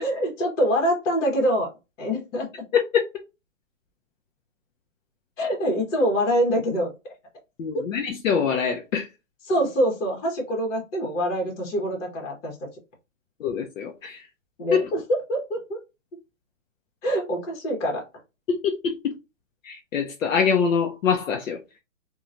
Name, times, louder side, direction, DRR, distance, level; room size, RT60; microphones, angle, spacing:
voice 1, 0.0-1.7 2.0-2.5 5.4-6.9 9.4-12.5 14.6-15.8 17.0-18.0, equal, 65° left, 1.3 m, -25 dB
voice 2, 7.6-9.1 13.4-14.2 14.7-14.8 18.5-19.1 19.6-21.8, left 6 dB, 80° left, 0.7 m, -25 dB
2.9 x 2.3 x 2.5 m
hypercardioid pair, 160°, 39 cm